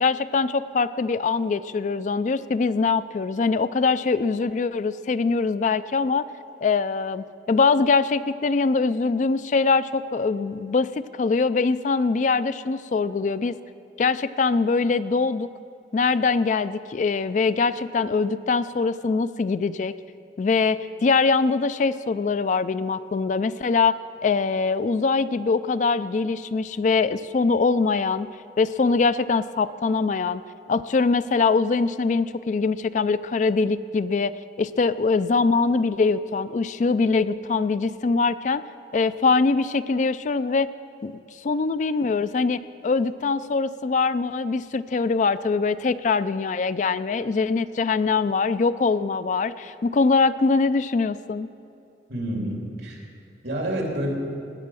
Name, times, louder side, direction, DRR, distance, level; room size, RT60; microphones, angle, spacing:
voice 1, 0.0-6.3 6.6-13.6 14.0-15.5 15.9-19.9 20.4-23.9 24.2-28.3 28.6-30.4 30.7-34.3 34.6-38.6 38.9-40.7 41.0-51.5, left 4 dB, 45° left, 14 dB, 0.3 m, -23 dB
voice 2, 52.1-53.0 53.4-54.1, right 1 dB, 70° right, 0 dB, 2.9 m, -28 dB
17.5 x 9.3 x 6.2 m, 2.6 s
head